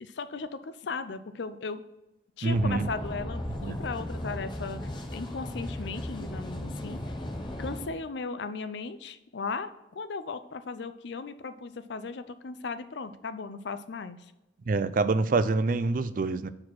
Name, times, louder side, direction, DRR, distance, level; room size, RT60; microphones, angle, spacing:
voice 1, 0.0-1.8 2.4-7.0 7.6-14.2, left 4 dB, 65° left, 11 dB, 0.5 m, -37 dB
voice 2, 2.4-2.9 3.6-3.8 14.7-16.5, right 3 dB, 45° right, 13 dB, 0.4 m, -26 dB
sound 1, 2.5-7.9, left 1 dB, 25° left, 0.9 m, -36 dB
6.4 x 4.8 x 5.9 m, 0.98 s
head